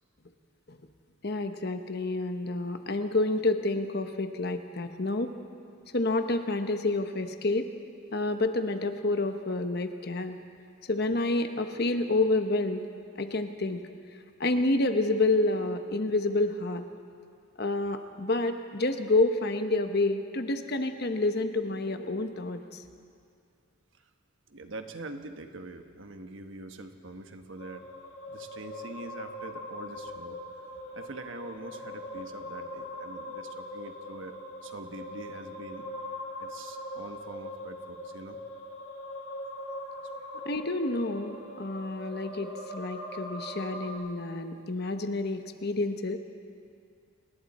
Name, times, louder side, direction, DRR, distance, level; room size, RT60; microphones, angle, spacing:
voice 1, 1.2-5.3 5.9-7.7 8.1-10.3 10.9-12.8 13.2-13.9 14.4-16.8 17.6-22.8 40.4-46.2, left 2 dB, 50° left, 7 dB, 1.1 m, -29 dB
voice 2, 24.5-27.9 28.3-30.4 30.9-34.4 34.6-35.8 36.4-38.4, right 2 dB, 65° right, 6 dB, 1.3 m, -44 dB
sound 1, 27.6-43.9, left 1 dB, 75° left, 5.2 m, -41 dB
29.5 x 20.5 x 4.3 m, 2.3 s
head